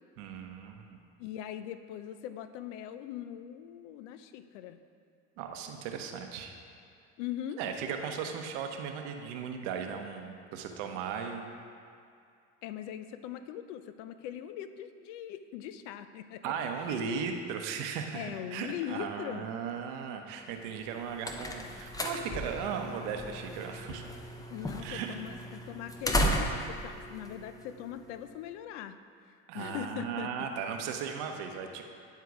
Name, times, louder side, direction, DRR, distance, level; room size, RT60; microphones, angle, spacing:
voice 1, 0.2-1.0 5.4-6.5 7.6-11.5 16.4-24.0 24.8-25.2 29.5-31.8, right 6 dB, 75° right, 4 dB, 0.8 m, -37 dB
voice 2, 1.2-4.8 7.2-7.6 12.6-16.5 16.9-17.1 18.1-19.5 24.5-29.0 29.5-30.5, left 10 dB, 80° left, 11 dB, 0.5 m, -41 dB
sound 1, 20.7-28.2, equal, 10° left, 0.6 m, -35 dB
9.6 x 3.7 x 4.7 m, 2.4 s
supercardioid pair, 85°, 36 cm